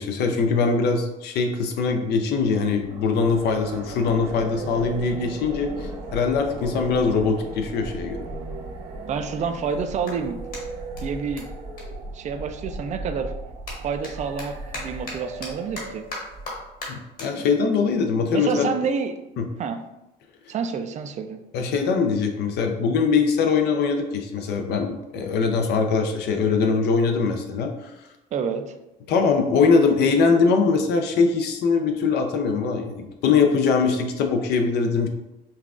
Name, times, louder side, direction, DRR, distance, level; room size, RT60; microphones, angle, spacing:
voice 1, 0.0-8.2 17.2-18.7 19.4-19.5 21.5-27.9 29.1-35.1, left 5 dB, 75° left, 4 dB, 0.5 m, -22 dB
sound 1, 2.7-16.8, right 2 dB, 75° right, 0.9 m, -36 dB
voice 2, 9.1-10.4 11.0-11.5 12.1-13.3 13.8-16.1 17.4-17.5 18.3-19.2 19.6-19.8 20.5-21.4 28.3-28.7, right 6 dB, 45° right, 8 dB, 0.4 m, -28 dB
Clapping, 10.0-12.8 13.1-19.7, left 2 dB, 55° left, 1.4 m, -41 dB
5.4 x 2.3 x 2.4 m, 0.96 s
cardioid pair, 110°, 17 cm